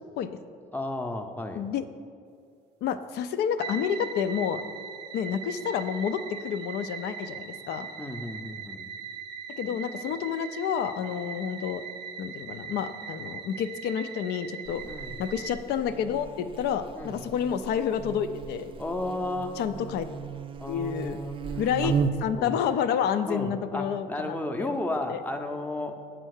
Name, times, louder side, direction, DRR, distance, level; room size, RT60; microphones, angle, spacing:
voice 1, 0.7-1.6 8.0-8.9 14.8-15.1 16.9-17.2 18.8-19.6 20.6-21.9 22.3-22.6 23.2-26.0, left 2 dB, 10° left, 5 dB, 0.6 m, -33 dB
voice 2, 2.8-4.6 5.1-7.9 9.6-11.9 12.2-14.8 15.2-18.7 19.6-20.1 20.7-21.2 21.6-21.9 22.2-24.8 25.1-25.2, left 8 dB, 75° left, 10 dB, 0.5 m, -29 dB
sound 1, 3.6-15.6, right 7 dB, 80° right, 0.6 m, -40 dB
Buzz, 14.6-22.4, right 6 dB, 30° right, 0.4 m, -35 dB
7.5 x 4.5 x 6.4 m, 2.3 s
cardioid pair, 110°, 17 cm